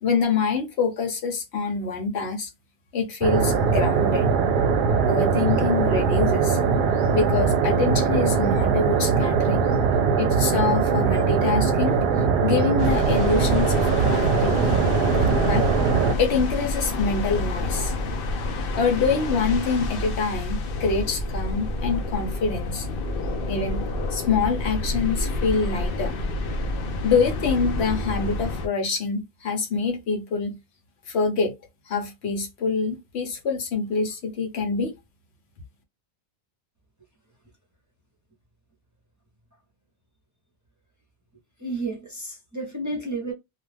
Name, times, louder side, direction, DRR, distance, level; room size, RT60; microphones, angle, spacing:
voice 1, 0.0-2.5 2.9-4.3 5.1-6.6 7.1-9.7 10.2-12.0 12.4-14.8 15.5-15.7 16.2-18.0 18.7-22.9 23.5-23.8 24.1-26.3 27.0-30.6 31.1-31.5 31.9-34.9, left 5 dB, 85° left, 1.1 m, -25 dB
sound 1, 3.2-16.1, right 5 dB, 60° right, 0.6 m, -21 dB
sound 2, 12.8-28.7, left 2 dB, 65° left, 0.7 m, -28 dB
voice 2, 41.6-43.3, right 2 dB, 20° right, 0.6 m, -31 dB
2.4 x 2.3 x 3.2 m
omnidirectional pair, 1.1 m